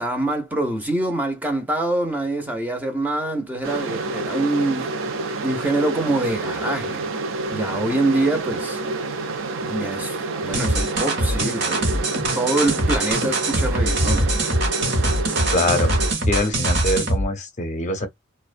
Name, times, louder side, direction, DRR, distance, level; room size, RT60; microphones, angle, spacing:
voice 1, 0.0-4.9 5.4-7.1 7.5-8.8 9.7-12.0 12.3-14.4, right 2 dB, 10° right, 0.5 m, -25 dB
sound 1, 3.6-16.1, right 3 dB, 75° right, 0.4 m, -28 dB
sound 2, 10.5-17.3, right 1 dB, 60° right, 0.9 m, -22 dB
voice 2, 15.5-15.9 16.3-18.1, left 1 dB, 40° left, 0.6 m, -23 dB
2.4 x 2.1 x 2.4 m
head